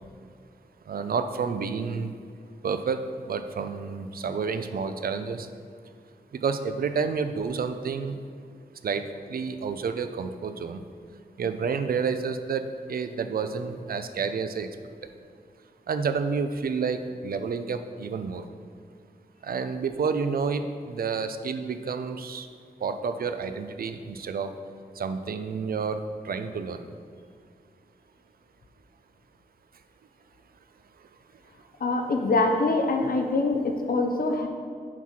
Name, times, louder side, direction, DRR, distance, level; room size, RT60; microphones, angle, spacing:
voice 1, 0.9-2.1 2.6-3.0 3.3-5.5 6.4-8.2 8.8-10.8 11.4-14.7 15.9-18.4 19.4-22.5 22.8-24.5 25.0-26.0 26.2-26.8, right 5 dB, 65° right, 9 dB, 0.5 m, -29 dB
voice 2, 31.8-34.5, left 2 dB, 60° left, 3 dB, 0.7 m, -24 dB
5.9 x 4.6 x 5.8 m, 2.2 s
wide cardioid pair, 140°, 17 cm